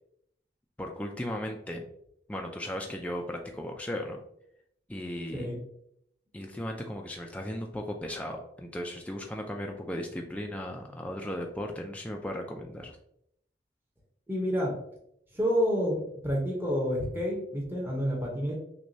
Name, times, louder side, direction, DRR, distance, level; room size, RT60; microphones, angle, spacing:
voice 1, 0.8-1.8 2.3-4.2 4.9-5.5 6.3-13.0, left 1 dB, 10° left, 2 dB, 0.3 m, -36 dB
voice 2, 14.3-14.7 15.3-18.6, equal, 10° right, -3 dB, 0.8 m, -29 dB
6.0 x 2.3 x 2.6 m, 0.73 s
head